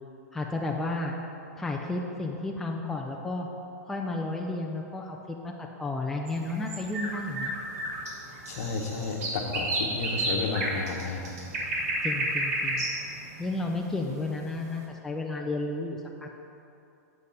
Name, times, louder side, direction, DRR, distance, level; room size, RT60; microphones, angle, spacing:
voice 1, 0.3-1.2 1.6-3.5 3.9-7.5 12.0-12.8 13.4-16.4, left 2 dB, 5° left, 0 dB, 0.4 m, -32 dB
sound 1, 6.3-14.5, right 1 dB, 70° right, 2.1 m, -31 dB
voice 2, 8.5-11.3, left 4 dB, 60° left, 2 dB, 1.1 m, -32 dB
7.9 x 7.2 x 4.1 m, 2.8 s
hypercardioid pair, 150°, 9 cm